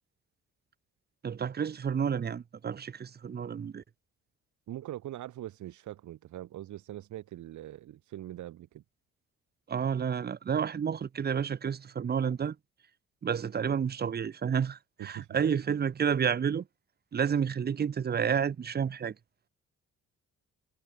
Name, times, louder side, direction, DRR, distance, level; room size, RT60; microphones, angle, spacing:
voice 1, 1.2-3.8 9.7-12.6 13.2-16.7 17.1-19.1, right 7 dB, 35° right, 0.8 m, -30 dB
voice 2, 4.7-8.8 15.0-15.4, right 13 dB, 75° right, 1.6 m, -42 dB
cardioid pair, 90°, 30 cm